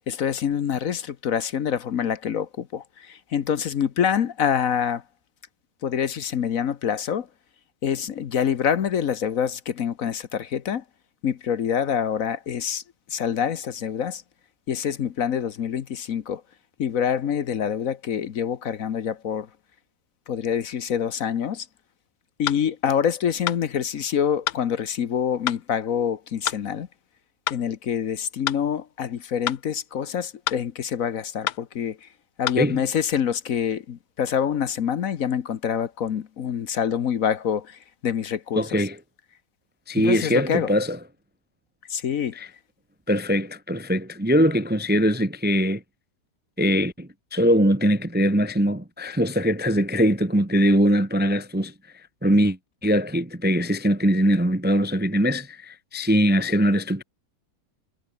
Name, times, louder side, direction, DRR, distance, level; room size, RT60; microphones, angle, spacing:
voice 1, 0.1-5.0 5.8-7.3 7.8-10.8 11.2-12.8 13.1-14.2 14.7-16.4 16.8-19.5 20.3-21.7 22.4-26.9 27.5-32.1 32.4-38.8 40.0-40.7 41.9-42.3, left 8 dB, 55° left, 1.3 m, -26 dB
sound 1, 22.5-22.6 23.5-23.6 24.5-24.6 25.5-25.6 26.5-26.6 27.5-27.6 28.5-28.6 29.5-29.6 30.5-30.6 31.5-31.6 32.5-32.6, left 13 dB, 85° left, 1.4 m, -27 dB
voice 2, 38.6-39.0 39.9-41.0 42.3-42.5 43.1-45.8 46.6-51.7 52.2-57.0, equal, 10° right, 0.7 m, -22 dB
omnidirectional pair, 1.8 m